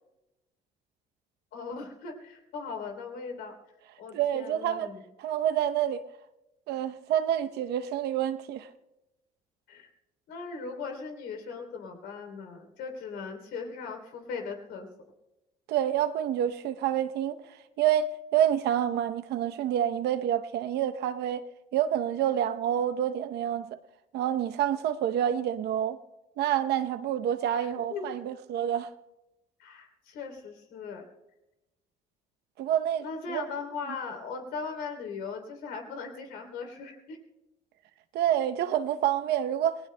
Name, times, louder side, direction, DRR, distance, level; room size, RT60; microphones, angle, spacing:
voice 1, 1.5-3.5 4.0-5.0 9.7-9.9 10.3-14.9 27.6-28.1 29.6-31.1 33.0-37.2, left 5 dB, 90° left, 3.2 m, -39 dB
voice 2, 4.1-4.9 5.2-6.0 6.7-8.7 15.7-17.4 17.8-21.5 21.7-23.7 24.1-26.0 26.4-28.9 32.6-33.4 38.1-39.8, right 10 dB, 75° right, 0.8 m, -28 dB
28.5 x 19.0 x 2.2 m
cardioid pair, 110°, 17 cm